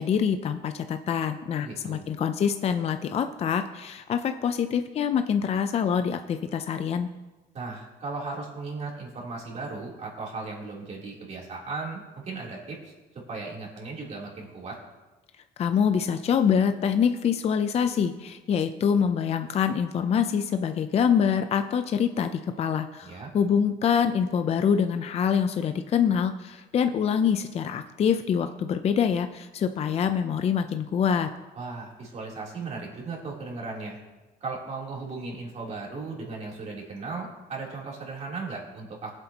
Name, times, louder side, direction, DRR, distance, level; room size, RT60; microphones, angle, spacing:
voice 1, 0.0-7.1 15.6-31.3, left 7 dB, 40° left, 8 dB, 0.5 m, -25 dB
voice 2, 1.6-2.1 7.5-12.9 13.3-14.8 23.0-23.3 31.6-34.0 34.4-39.1, right 3 dB, 40° right, -3 dB, 3.3 m, -36 dB
20.0 x 7.9 x 2.9 m, 1.2 s
cardioid pair, 130°, 17 cm